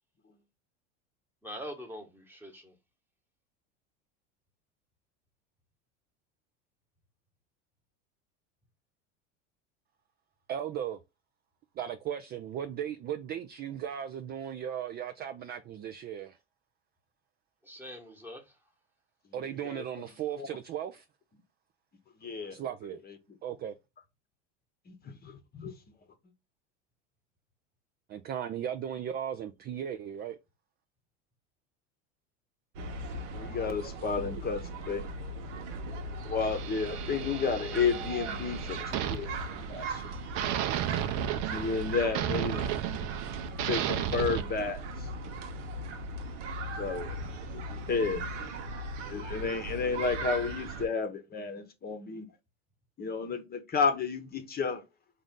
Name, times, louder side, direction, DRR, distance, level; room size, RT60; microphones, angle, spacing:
voice 1, 1.4-2.7 17.6-18.4 22.4-22.7, equal, 5° right, 1.2 m, -44 dB
voice 2, 10.5-11.0 11.8-16.4 19.3-21.0 22.5-23.0 23.4-23.7 28.1-30.4, right 9 dB, 30° right, 0.3 m, -36 dB
voice 3, 22.2-22.6 24.9-25.7 33.3-35.3 36.2-40.0 41.5-42.7 43.3-45.1 46.8-47.1 47.5-48.5 49.1-52.3 53.0-54.8, left 5 dB, 25° left, 0.9 m, -32 dB
sound 1, 32.8-50.9, right 2 dB, 80° right, 1.0 m, -38 dB
sound 2, 36.4-40.0 40.4-44.4, right 10 dB, 55° right, 0.7 m, -34 dB
3.9 x 2.5 x 3.6 m
supercardioid pair, 105°, 35 cm